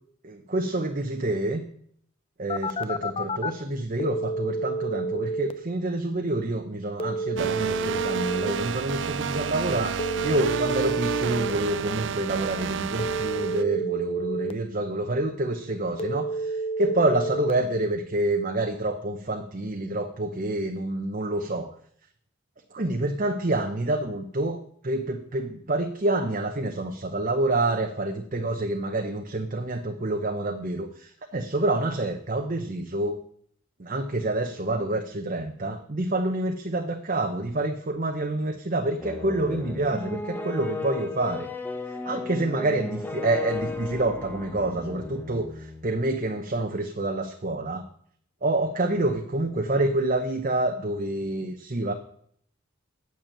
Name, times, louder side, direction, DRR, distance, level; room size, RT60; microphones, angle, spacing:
voice 1, 0.2-1.6 2.4-21.7 22.7-33.2 33.8-41.5 42.1-47.8 48.4-51.9, right 2 dB, 40° right, 5 dB, 0.8 m, -27 dB
Telephone, 2.5-3.5 4.0-5.5 7.0-8.5 10.0-11.5 13.0-14.5 16.0-17.5, right 2 dB, 30° left, 0.6 m, -29 dB
sound 1, 7.4-13.6, right 7 dB, 60° right, 0.4 m, -30 dB
sound 2, 39.0-45.9, left 3 dB, 10° left, 1.0 m, -35 dB
9.0 x 7.1 x 8.7 m, 0.64 s
head